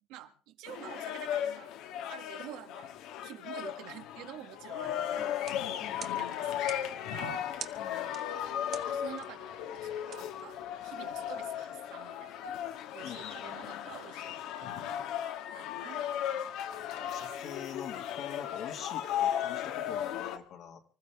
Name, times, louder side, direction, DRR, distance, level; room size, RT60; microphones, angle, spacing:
voice 1, 0.1-1.7 2.1-2.9 3.2-5.4 6.1-7.7 8.7-12.5 12.9-15.2 15.5-16.1, right 13 dB, 85° right, 7 dB, 1.7 m, -49 dB
sound 1, 0.7-20.4, left 10 dB, 80° left, 1.5 m, -36 dB
sound 2, 5.4-11.1, right 8 dB, 45° right, 1.1 m, -49 dB
voice 2, 5.6-6.2 7.8-8.2 13.0-13.9 16.7-20.8, left 8 dB, 60° left, 4 dB, 1.8 m, -46 dB
25.0 x 14.5 x 3.5 m, 0.36 s
cardioid pair, 135°, 0 cm